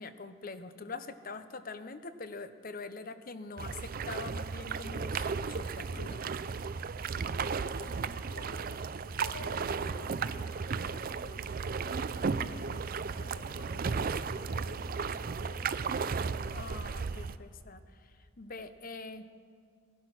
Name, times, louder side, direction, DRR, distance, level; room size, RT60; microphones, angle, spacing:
voice 1, 0.0-6.2 16.5-19.3, left 3 dB, 40° left, 11 dB, 0.7 m, -44 dB
sound 1, 3.6-17.4, right 5 dB, 40° right, 0.4 m, -35 dB
voice 2, 7.6-14.0 14.5-15.8, left 1 dB, 80° left, -1 dB, 2.0 m, -52 dB
18.5 x 12.0 x 6.0 m, 2.3 s
head